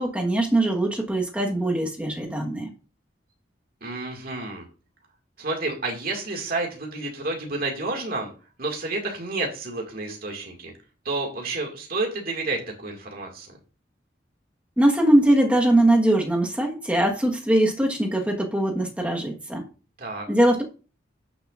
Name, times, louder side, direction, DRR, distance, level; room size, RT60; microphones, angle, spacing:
voice 1, 0.0-2.7 14.8-19.6 20.3-20.6, right 1 dB, 5° right, 1 dB, 1.3 m, -21 dB
voice 2, 3.8-4.7 5.4-8.3 8.6-10.7 11.1-13.5 20.0-20.3, right 2 dB, 50° right, 1 dB, 2.1 m, -30 dB
11.5 x 6.9 x 2.5 m, 0.34 s
head